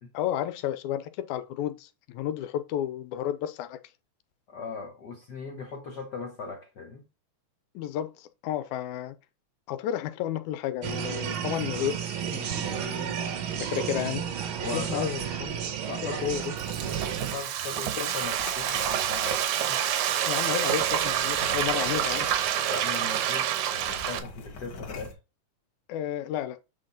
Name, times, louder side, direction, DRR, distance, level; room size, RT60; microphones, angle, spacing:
voice 1, 0.1-3.8 7.8-9.2 9.7-13.3 13.5-14.2 14.7-15.7 16.0-16.9 18.0-18.1 20.2-22.3 25.9-26.6, left 11 dB, 85° left, 2.1 m, -32 dB
voice 2, 4.5-7.0 14.6-15.1 15.9-16.3 17.2-19.8 22.7-25.2, left 4 dB, 70° left, 1.0 m, -38 dB
sound 1, 10.8-17.3, right 8 dB, 65° right, 1.3 m, -32 dB
Frying (food), 16.3-24.2, right 10 dB, 85° right, 2.3 m, -28 dB
sound 2, 18.1-20.0 20.7-22.9 23.2-23.3 23.7-25.1, left 4 dB, 50° left, 1.5 m, -43 dB
8.4 x 3.7 x 3.9 m
omnidirectional pair, 3.3 m